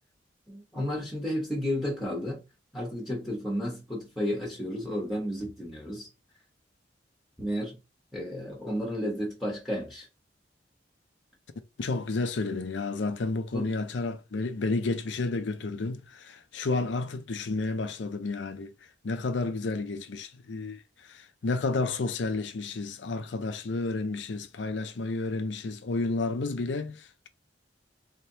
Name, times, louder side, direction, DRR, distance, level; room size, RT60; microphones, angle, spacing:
voice 1, 0.5-2.4 2.7-6.1 7.4-7.8 8.1-10.1 13.5-13.7, equal, ahead, 1.2 m, -32 dB
voice 2, 11.8-18.7 19.0-27.3, left 3 dB, 75° left, 0.5 m, -31 dB
3.5 x 3.3 x 2.8 m
head